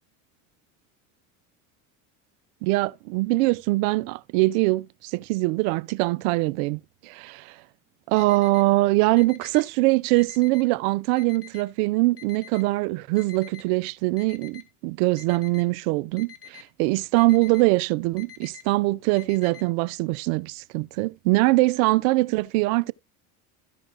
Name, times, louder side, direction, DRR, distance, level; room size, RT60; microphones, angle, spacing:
voice 1, 2.6-7.5 8.1-22.9, right 21 dB, 70° right, 0.6 m, -23 dB
Alarm, 8.2-8.6 9.2-9.6 10.2-10.6 11.2-11.6 12.2-12.6 13.2-13.6 14.2-14.6 15.2-15.6 16.2-16.6 17.2-17.6 18.2-18.6 19.2-19.6, left 12 dB, 35° left, 2.0 m, -45 dB
13.5 x 5.2 x 3.8 m
supercardioid pair, 90°, 43 cm